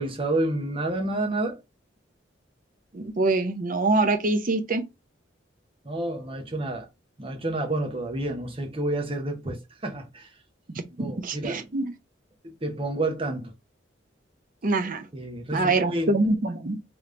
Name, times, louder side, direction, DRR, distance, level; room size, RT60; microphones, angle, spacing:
voice 1, 0.0-1.6 5.8-6.9 7.2-10.3 11.0-11.6 12.4-13.5 15.1-16.2, right 2 dB, 30° right, 1.0 m, -29 dB
voice 2, 2.9-4.8 10.7-11.9 14.6-15.1 15.5-16.8, right 2 dB, 45° right, 0.6 m, -25 dB
3.5 x 3.0 x 3.7 m
head